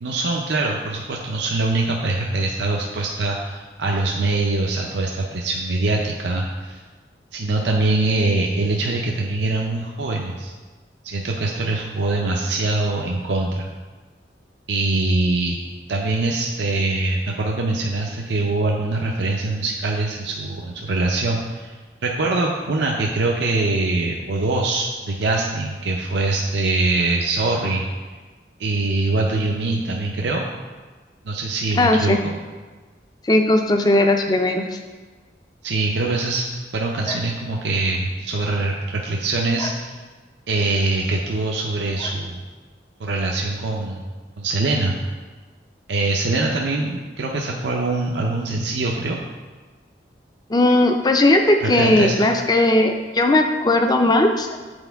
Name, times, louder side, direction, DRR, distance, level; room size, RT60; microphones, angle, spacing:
voice 1, 0.0-6.8 7.3-10.5 11.0-13.7 14.7-15.6 15.9-21.8 22.0-27.9 28.6-30.5 31.2-32.3 35.6-39.9 40.5-42.4 43.0-44.0 44.4-45.0 45.9-49.2 51.6-52.3, right 2 dB, 85° right, 0 dB, 0.6 m, -23 dB
voice 2, 31.8-32.2 33.2-34.8 37.1-37.2 39.6-39.7 50.5-54.5, left 2 dB, 20° left, 4 dB, 0.4 m, -17 dB
8.0 x 4.4 x 3.4 m, 1.3 s
head